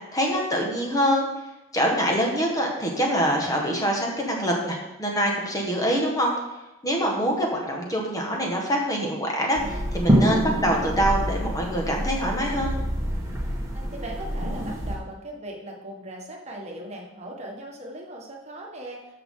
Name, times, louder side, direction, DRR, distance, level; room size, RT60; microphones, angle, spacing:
voice 1, 0.1-1.3 1.7-6.3 6.8-12.7, equal, 15° left, -1 dB, 1.5 m, -25 dB
sound 1, 9.6-15.0, equal, 15° right, 1.5 m, -26 dB
voice 2, 13.5-19.0, right 1 dB, 30° right, -1 dB, 1.5 m, -39 dB
13.0 x 6.0 x 3.8 m, 1.0 s
head